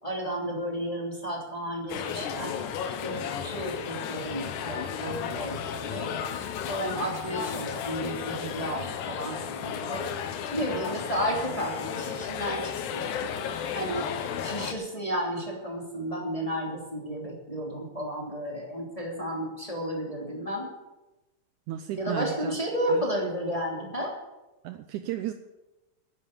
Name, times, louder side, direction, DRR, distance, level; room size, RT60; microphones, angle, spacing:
voice 1, 0.0-2.6 3.0-6.1 6.7-10.1 10.5-13.0 13.7-14.1 14.4-20.7 21.9-24.1, equal, 10° left, -2 dB, 2.5 m, -32 dB
sound 1, 1.9-14.7, left 7 dB, 70° left, 2.1 m, -34 dB
voice 2, 21.7-22.6 22.9-23.1 24.6-25.3, right 13 dB, 90° right, 9 dB, 1.7 m, -34 dB
11.0 x 10.0 x 8.4 m, 1.0 s
omnidirectional pair, 4.3 m